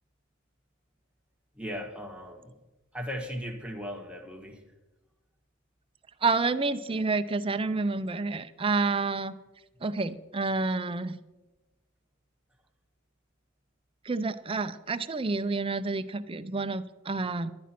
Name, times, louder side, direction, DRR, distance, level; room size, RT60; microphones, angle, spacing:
voice 1, 1.5-2.6 2.9-4.6, equal, 5° right, 1 dB, 1.4 m, -37 dB
voice 2, 6.2-9.3 9.8-11.2 14.1-17.5, right 3 dB, 25° right, 11 dB, 0.5 m, -29 dB
11.5 x 9.4 x 5.9 m, 1.1 s
head